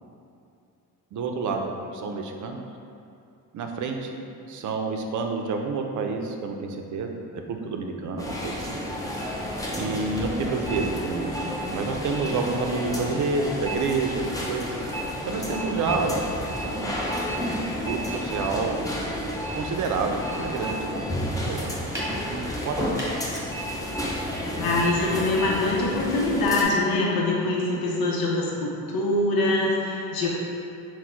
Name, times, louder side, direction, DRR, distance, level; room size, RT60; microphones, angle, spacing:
voice 1, 1.1-2.6 3.5-8.8 9.7-14.7 15.3-16.3 16.7-17.1 17.7-18.8 19.5-21.7 22.3-22.8, right 4 dB, 55° right, 3 dB, 0.5 m, -29 dB
sound 1, 8.2-26.6, equal, 10° left, 0.5 m, -31 dB
sound 2, 21.9-22.2 22.8-23.2, equal, 10° right, 1.2 m, -28 dB
voice 2, 24.6-30.3, left 2 dB, 80° left, -3 dB, 0.8 m, -24 dB
4.2 x 2.2 x 4.3 m, 2.6 s
cardioid pair, 110°, 35 cm